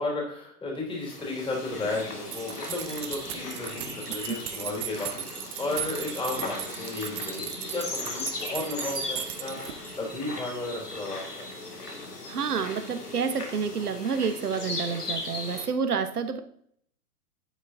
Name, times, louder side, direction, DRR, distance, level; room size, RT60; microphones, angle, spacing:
voice 1, 0.0-11.5, left 2 dB, 10° left, -1 dB, 3.5 m, -34 dB
sound 1, 0.9-15.7, left 2 dB, 85° left, 2.5 m, -38 dB
sound 2, 2.3-10.0, right 12 dB, 55° right, 1.0 m, -38 dB
voice 2, 12.3-16.4, right 6 dB, 80° right, 8 dB, 1.4 m, -29 dB
11.5 x 8.5 x 2.8 m, 0.65 s
figure-of-eight pair, 110°, 46 cm